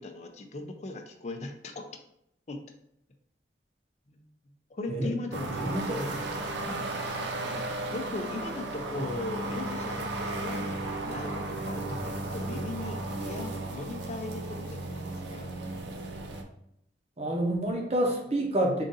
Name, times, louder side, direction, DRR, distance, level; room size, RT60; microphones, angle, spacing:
voice 1, 0.0-1.8 2.5-2.6 4.1-4.3 4.7-6.2 7.4-15.0 15.3-15.5, left 2 dB, 40° left, 4 dB, 0.4 m, -39 dB
sound 1, 5.3-16.4, right 2 dB, 80° right, 0.5 m, -35 dB
voice 2, 5.5-6.1 6.6-6.8 9.0-9.1 11.9-12.1 17.2-18.8, right 1 dB, 35° right, 0 dB, 0.7 m, -29 dB
3.8 x 2.5 x 3.9 m, 0.77 s
head